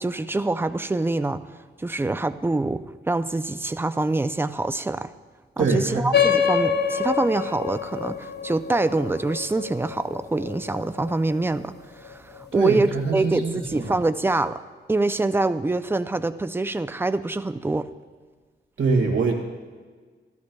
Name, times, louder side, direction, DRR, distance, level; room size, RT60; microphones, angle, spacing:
voice 1, 0.0-1.4 1.8-5.1 5.6-11.7 12.0-14.6 14.9-17.9, right 2 dB, 10° right, 11 dB, 0.4 m, -25 dB
voice 2, 5.6-6.1 12.5-13.9 18.8-19.3, right 4 dB, 70° right, 2 dB, 1.9 m, -23 dB
sound 1, 6.1-11.1, left 7 dB, 55° left, 0.6 m, -25 dB
14.0 x 13.0 x 2.3 m, 1.5 s
wide cardioid pair, 100°, 20 cm